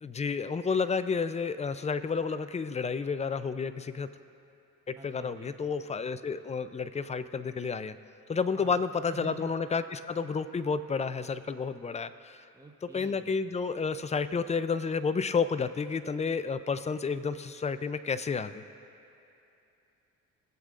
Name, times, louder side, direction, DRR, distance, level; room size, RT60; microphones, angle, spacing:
voice 1, 0.0-4.1 4.9-8.0 8.3-12.4 12.9-18.6, left 5 dB, 25° left, 12 dB, 0.4 m, -31 dB
voice 2, 5.0-5.6 8.5-8.8 9.1-9.5 12.5-13.4, right 3 dB, 10° right, 2 dB, 0.9 m, -47 dB
23.5 x 8.1 x 2.5 m, 2.8 s
cardioid pair, 90°, 30 cm